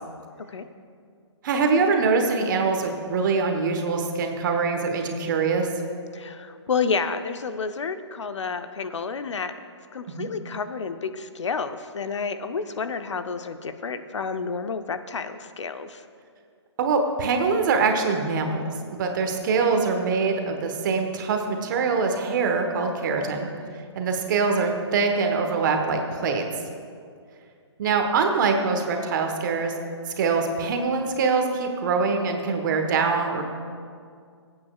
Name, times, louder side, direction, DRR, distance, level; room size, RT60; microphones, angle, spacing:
voice 1, 1.4-5.7 10.1-10.3 16.8-18.6 18.9-23.5 23.9-26.4 27.8-29.7 30.2-33.4, right 4 dB, 40° right, 4 dB, 1.3 m, -24 dB
voice 2, 6.1-9.5 9.9-16.0, left 5 dB, 75° left, 10 dB, 0.7 m, -30 dB
22.5 x 8.7 x 2.4 m, 2.2 s
hypercardioid pair, 145°, 15 cm